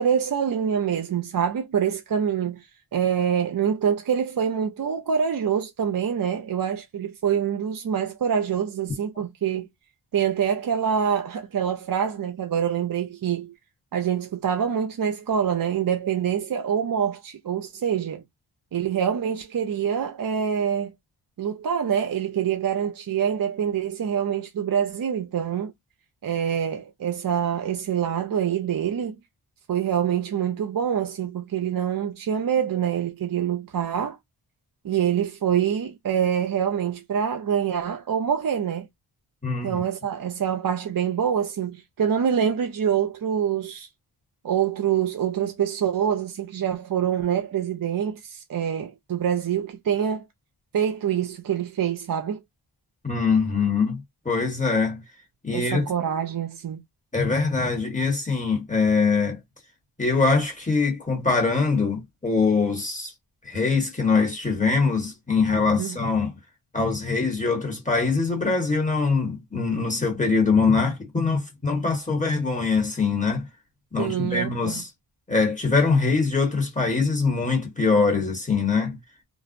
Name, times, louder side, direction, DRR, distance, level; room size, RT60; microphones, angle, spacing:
voice 1, 0.0-9.7 10.1-13.5 13.9-18.2 18.7-20.9 21.4-25.7 26.2-29.2 29.7-34.2 34.8-38.9 39.6-43.9 44.4-50.2 50.7-52.4 55.5-56.8 65.8-66.0 74.0-74.8, right 8 dB, 45° right, 0.5 m, -25 dB
voice 2, 39.4-39.8 53.0-54.0 54.2-55.0 55.4-55.8 57.1-59.4 60.0-63.1 63.4-66.3 66.7-73.5 73.9-74.9 75.3-79.0, left 4 dB, 15° left, 1.2 m, -23 dB
2.5 x 2.0 x 2.5 m
cardioid pair, 50°, 50 cm